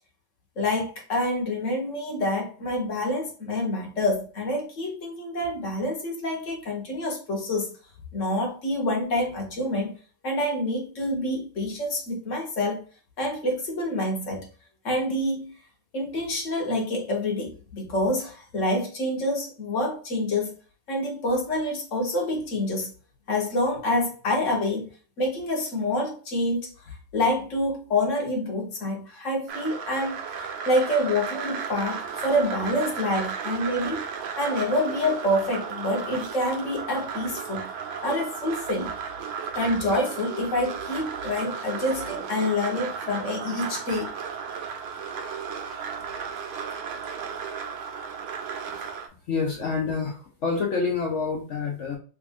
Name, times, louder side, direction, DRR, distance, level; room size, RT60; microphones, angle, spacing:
voice 1, 0.6-7.7 8.1-10.0 10.2-12.8 13.2-14.5 14.8-15.5 15.9-20.5 20.9-22.9 23.3-24.9 25.2-34.0 34.4-37.7 38.0-38.9 39.5-44.1, left 1 dB, 50° left, 1.1 m, -27 dB
sound 1, 29.5-49.1, right 6 dB, 80° right, 1.4 m, -34 dB
voice 2, 49.3-52.0, left 4 dB, 75° left, 0.6 m, -27 dB
3.5 x 2.4 x 3.5 m
omnidirectional pair, 2.1 m